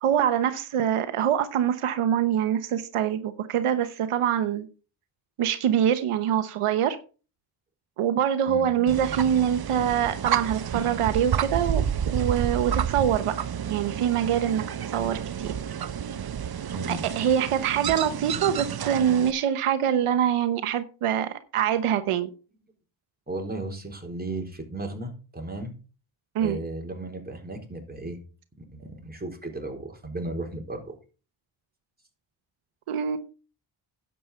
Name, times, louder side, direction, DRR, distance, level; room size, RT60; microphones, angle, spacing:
voice 1, 0.0-4.7 5.4-7.0 8.0-13.4 13.7-14.6 14.9-15.5 16.9-22.3 26.3-26.6 32.9-33.2, right 9 dB, 85° right, 1.0 m, -24 dB
sound 1, 8.9-19.3, right 8 dB, 50° right, 0.8 m, -30 dB
voice 2, 16.7-17.0 23.3-25.7 26.4-28.2 28.7-31.0, right 2 dB, 20° right, 4.2 m, -35 dB
11.0 x 8.4 x 4.4 m
cardioid pair, 60°, 50 cm